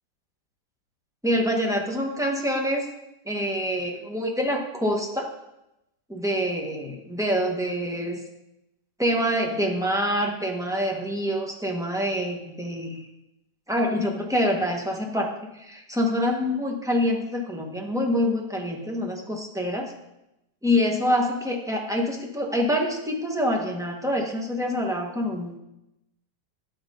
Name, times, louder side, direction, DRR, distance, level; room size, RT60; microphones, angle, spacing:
voice 1, 1.2-2.8 3.2-5.3 6.1-8.2 9.0-13.0 13.7-15.3 15.6-19.9 20.6-25.6, equal, ahead, 0 dB, 1.4 m, -26 dB
13.0 x 9.3 x 4.0 m, 0.91 s
omnidirectional pair, 1.9 m